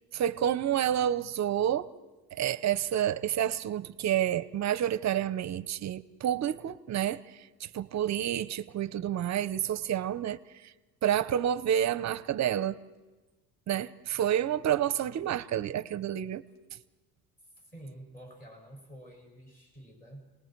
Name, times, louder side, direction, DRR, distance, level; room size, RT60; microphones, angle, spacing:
voice 1, 0.1-1.9 2.3-10.4 11.0-12.7 13.7-16.4, right 10 dB, 40° right, 0.7 m, -29 dB
voice 2, 17.6-20.2, right 1 dB, 20° left, 7.0 m, -49 dB
29.5 x 20.0 x 4.6 m
cardioid pair, 120°, 41 cm